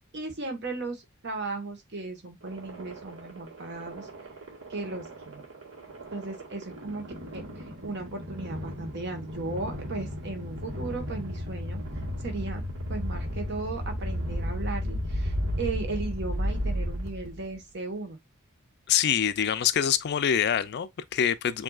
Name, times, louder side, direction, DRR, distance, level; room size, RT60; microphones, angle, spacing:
voice 1, 0.0-4.1 4.7-5.5 6.1-7.1 7.3-11.8 12.2-12.6 12.9-18.2, right 3 dB, 55° right, 1.3 m, -36 dB
sound 1, 2.4-17.5, equal, 70° right, 1.6 m, -34 dB
voice 2, 18.9-21.6, left 9 dB, 50° left, 0.4 m, -25 dB
7.6 x 2.7 x 2.4 m
head